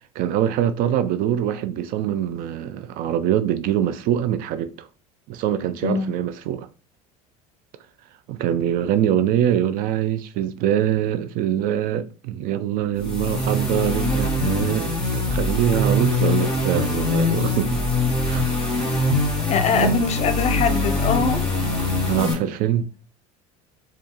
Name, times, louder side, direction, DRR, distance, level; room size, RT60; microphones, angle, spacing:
voice 1, 0.2-4.9 5.3-6.7 8.3-17.8 18.2-18.5 19.8-19.9 21.8-22.9, right 10 dB, 50° right, 0.4 m, -23 dB
sound 1, 13.0-22.3, left 2 dB, 5° left, 2.0 m, -23 dB
voice 2, 19.5-21.5 22.0-22.1, left 6 dB, 35° left, 0.6 m, -23 dB
4.4 x 2.4 x 2.9 m
hypercardioid pair, 75°, 19 cm